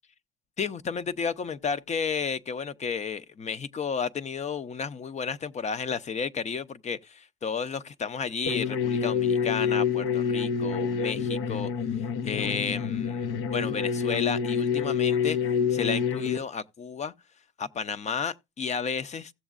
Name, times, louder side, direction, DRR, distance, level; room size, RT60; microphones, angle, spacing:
voice 1, 0.6-11.7 12.2-15.4 15.7-17.1 17.6-19.3, left 6 dB, 35° left, 0.5 m, -32 dB
sound 1, 8.5-16.4, left 6 dB, 80° left, 0.7 m, -27 dB
16.0 x 7.1 x 2.4 m
cardioid pair, 115°, 21 cm